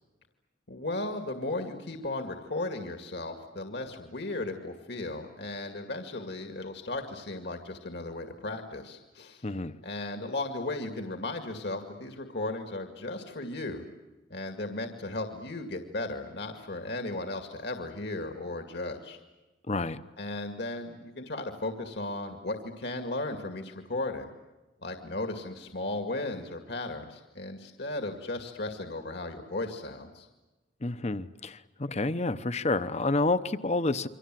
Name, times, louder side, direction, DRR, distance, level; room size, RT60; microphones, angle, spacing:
voice 1, 0.7-9.5 9.8-13.8 14.3-19.2 20.2-24.3 24.8-30.3, left 2 dB, 65° left, 5 dB, 2.2 m, -36 dB
voice 2, 9.4-9.7 19.7-20.0 30.8-34.1, left 2 dB, 35° left, 13 dB, 0.9 m, -29 dB
28.5 x 24.5 x 7.7 m, 1.1 s
head